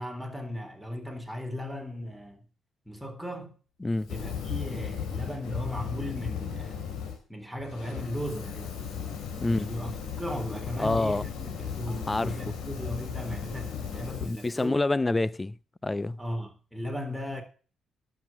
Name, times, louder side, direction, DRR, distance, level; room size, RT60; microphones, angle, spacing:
voice 1, 0.0-2.4 2.9-3.6 4.1-6.8 7.3-8.9 9.4-14.7 16.2-17.4, equal, ahead, 3.7 m, -37 dB
voice 2, 3.8-4.1 9.4-9.7 10.8-11.2 11.9-12.5 14.2-15.6 15.8-16.2, left 2 dB, 20° left, 0.5 m, -27 dB
Fire, 4.0-7.2 7.6-14.6, left 7 dB, 85° left, 3.6 m, -36 dB
11.5 x 7.8 x 7.6 m
cardioid pair, 90°, 0 cm